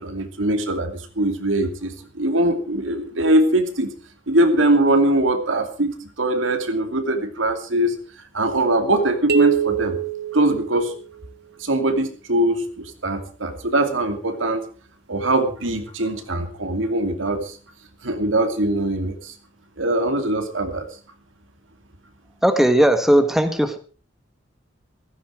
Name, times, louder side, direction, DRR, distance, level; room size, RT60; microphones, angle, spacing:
voice 1, 0.0-3.9 4.3-8.0 8.3-10.0 10.3-11.0 11.6-14.6 15.1-17.6 18.0-19.3 19.8-20.9, right 1 dB, 80° right, 7 dB, 2.7 m, -22 dB
sound 1, 9.3-11.2, right 9 dB, 55° right, 1.5 m, -24 dB
voice 2, 22.4-23.8, right 1 dB, ahead, 8 dB, 1.3 m, -17 dB
15.5 x 15.0 x 4.6 m, 0.38 s
head